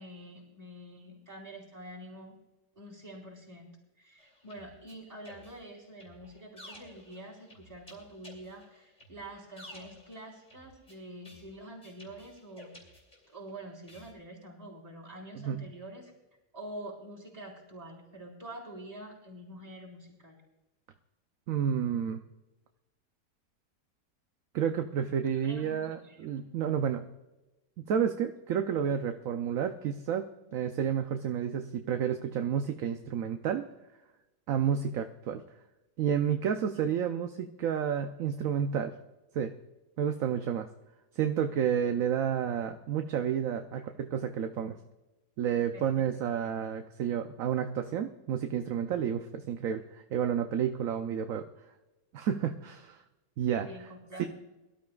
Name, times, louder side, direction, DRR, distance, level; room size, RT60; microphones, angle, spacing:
voice 1, 0.0-2.4 2.7-13.0 13.3-16.1 16.5-20.4 25.4-26.6 43.8-44.2 45.7-46.1 53.7-54.3, right 1 dB, 25° right, -3 dB, 4.5 m, -47 dB
sound 1, 4.2-13.5 13.9-14.1, left 1 dB, 25° left, 3.1 m, -54 dB
voice 2, 15.3-15.7 21.5-22.2 24.5-27.0 27.8-33.7 34.5-35.4 36.0-38.9 39.3-39.5 40.0-40.7 41.1-44.8 45.4-51.5 52.1-53.0 53.4-53.7 54.2-54.3, right 8 dB, 65° right, 6 dB, 1.0 m, -30 dB
23.0 x 13.0 x 2.3 m, 1.0 s
omnidirectional pair, 1.7 m